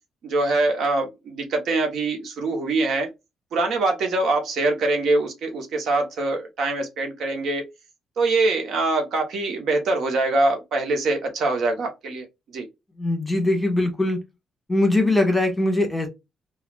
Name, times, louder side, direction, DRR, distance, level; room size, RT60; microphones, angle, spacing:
voice 1, 0.2-3.1 3.5-7.6 8.2-12.3 12.5-12.7, right 2 dB, 70° right, 0.9 m, -23 dB
voice 2, 13.0-14.2 14.7-16.1, left 2 dB, 10° left, 1.3 m, -21 dB
3.2 x 2.3 x 2.3 m
cardioid pair, 90°, 0 cm